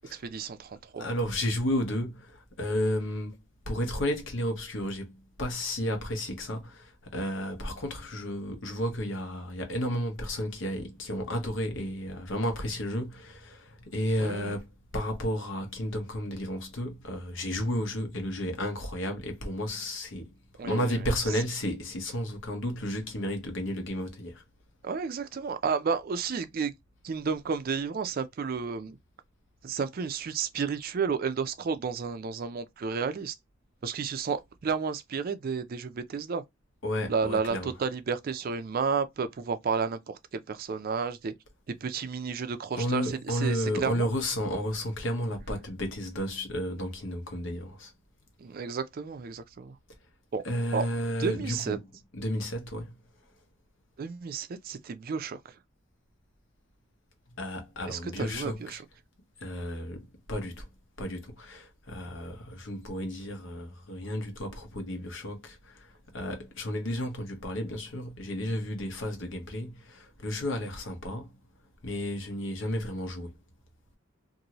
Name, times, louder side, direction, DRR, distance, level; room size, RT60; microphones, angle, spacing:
voice 1, 0.1-1.1 14.2-14.5 20.6-20.9 24.8-26.7 27.0-29.0 29.6-33.3 33.8-36.4 37.1-41.3 41.8-44.1 48.4-49.8 50.3-50.4 50.7-50.9 51.2-51.8 54.0-55.4 57.9-58.8, right 5 dB, 50° right, 0.4 m, -32 dB
voice 2, 1.0-3.4 3.7-14.7 14.9-20.3 20.6-24.4 36.8-37.7 42.7-47.9 50.4-51.8 52.1-52.9 57.4-58.8 59.4-60.7 61.0-71.3 71.8-73.3, equal, 75° left, 1.0 m, -32 dB
2.7 x 2.6 x 2.9 m
head